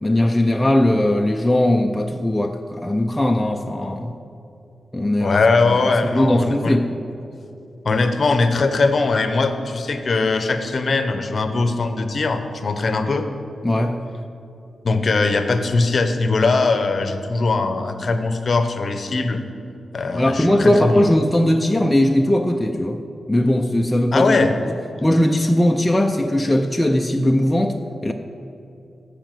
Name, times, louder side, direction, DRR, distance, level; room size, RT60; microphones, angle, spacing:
voice 1, 0.0-4.1 4.9-5.4 5.7-6.9 13.6-14.0 20.1-23.0 23.3-24.5 25.0-28.1, left 1 dB, 10° left, 3 dB, 0.4 m, -19 dB
voice 2, 5.2-6.8 7.8-13.3 14.8-19.4 19.9-21.1 24.1-24.5, left 3 dB, 40° left, 8 dB, 0.7 m, -20 dB
14.0 x 5.0 x 7.6 m, 2.7 s
wide cardioid pair, 165°, 0 cm